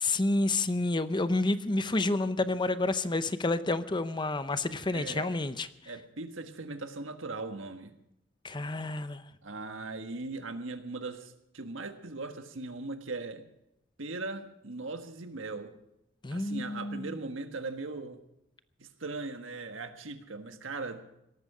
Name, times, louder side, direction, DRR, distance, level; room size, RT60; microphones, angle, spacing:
voice 1, 0.0-5.9 8.4-9.2 16.2-17.2, left 2 dB, 25° left, 13 dB, 0.7 m, -29 dB
voice 2, 4.9-5.3 5.9-7.9 9.4-13.4 14.0-15.7 16.3-18.2 18.8-21.0, right 3 dB, 85° right, 7 dB, 1.5 m, -39 dB
18.0 x 13.5 x 4.9 m, 0.82 s
head